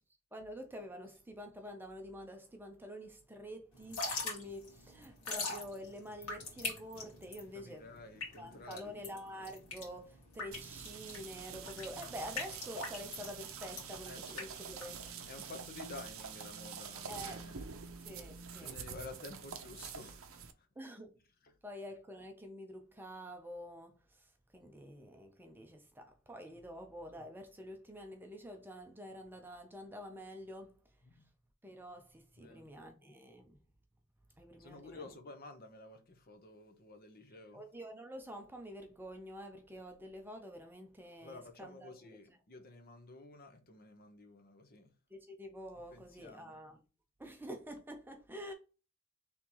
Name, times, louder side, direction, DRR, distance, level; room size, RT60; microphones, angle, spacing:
voice 1, 0.3-7.9 8.4-15.1 17.1-17.4 18.0-18.8 20.8-21.1 21.6-30.8 31.6-33.6 34.4-35.1 37.5-42.1 45.1-46.8 47.2-48.5, equal, 10° right, 0.6 m, -48 dB
Drip / Trickle dribble, 3.8-15.4, left 3 dB, 85° left, 2.0 m, -42 dB
voice 2, 7.5-9.0 14.0-14.5 15.3-17.7 18.6-20.7 21.4-21.5 31.0-31.3 32.4-32.7 34.6-37.6 41.2-44.9 45.9-46.6, left 3 dB, 45° left, 0.8 m, -52 dB
sound 1, 10.5-20.5, right 6 dB, 65° right, 0.6 m, -46 dB
4.3 x 3.6 x 2.9 m
head